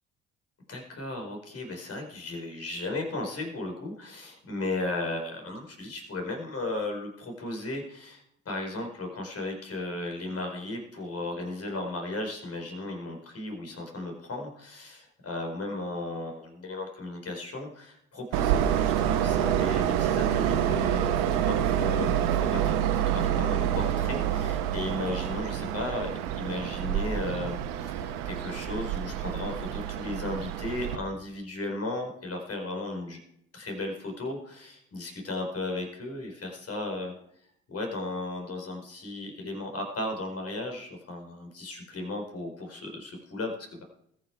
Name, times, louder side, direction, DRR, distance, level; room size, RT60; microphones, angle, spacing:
voice 1, 0.7-33.2 33.5-37.1 37.7-43.8, left 2 dB, 40° left, 3 dB, 4.6 m, -35 dB
Train, 18.3-31.0, right 10 dB, 65° right, 1.3 m, -27 dB
21.0 x 7.2 x 4.7 m, 0.72 s
figure-of-eight pair, 50°, 38 cm